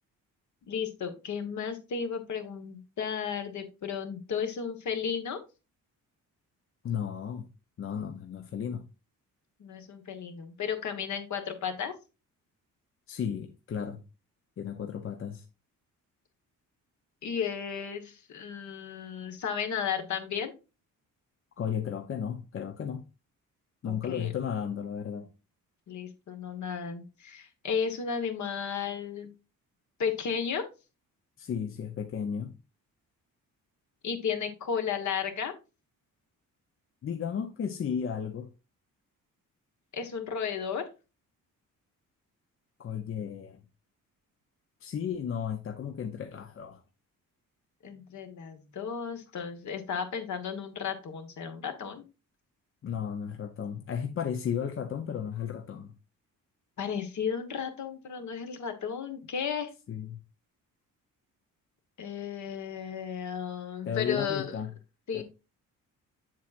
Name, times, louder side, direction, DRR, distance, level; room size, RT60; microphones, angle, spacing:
voice 1, 0.7-5.4 9.6-11.9 17.2-20.5 23.8-24.3 25.9-29.3 30.0-30.7 34.0-35.5 39.9-40.9 47.8-52.0 56.8-59.7 62.0-64.5 65.1-65.2, left 7 dB, 60° left, 1.3 m, -34 dB
voice 2, 6.8-7.5 7.8-8.9 13.1-14.0 14.6-15.4 21.6-23.1 23.8-25.3 31.4-32.6 37.0-38.5 42.8-43.6 44.8-46.8 52.8-55.9 59.9-60.2 63.8-64.7 65.1-65.2, left 8 dB, 40° left, 0.6 m, -34 dB
7.4 x 7.2 x 2.5 m
cardioid pair, 115°, 33 cm